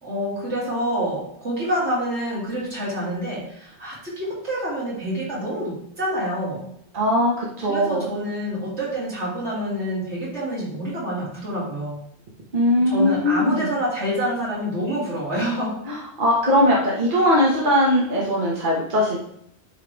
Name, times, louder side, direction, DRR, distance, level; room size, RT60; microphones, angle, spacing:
voice 1, 0.0-6.7 7.6-12.0 12.9-15.7, equal, 85° right, -6 dB, 2.9 m, -27 dB
voice 2, 6.9-8.1 12.5-13.7 15.9-19.2, left 1 dB, 50° right, -4 dB, 1.5 m, -20 dB
9.2 x 3.3 x 3.4 m, 0.68 s
omnidirectional pair, 1.1 m